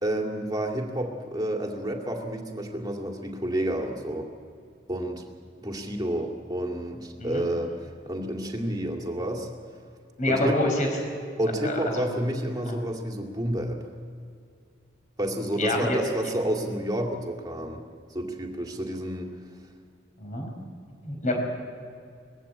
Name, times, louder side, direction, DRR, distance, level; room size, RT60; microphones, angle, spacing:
voice 1, 0.0-4.3 4.9-5.3 5.6-9.5 10.3-10.6 11.4-13.8 15.2-17.8 18.1-19.3, right 1 dB, 20° right, 2 dB, 2.3 m, -30 dB
voice 2, 10.2-10.9 11.6-12.0 12.6-12.7 15.6-16.0 20.2-20.5 21.0-21.4, left 1 dB, 45° left, 1 dB, 5.2 m, -27 dB
21.0 x 15.5 x 8.7 m, 2.4 s
head